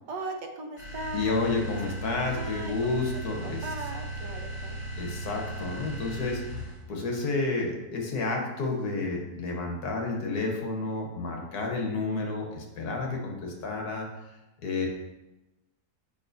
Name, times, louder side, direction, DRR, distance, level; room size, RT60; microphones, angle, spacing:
voice 1, 0.1-1.4 1.7-3.0 3.4-4.8, right 2 dB, 90° right, 3 dB, 1.4 m, -38 dB
sound 1, 0.8-6.9, right 1 dB, 55° left, 2.7 m, -37 dB
voice 2, 1.1-3.6 5.0-6.4 6.9-14.1 14.6-14.9, left 3 dB, 70° left, 1 dB, 1.6 m, -30 dB
6.8 x 5.7 x 2.6 m, 1.0 s
omnidirectional pair, 1.8 m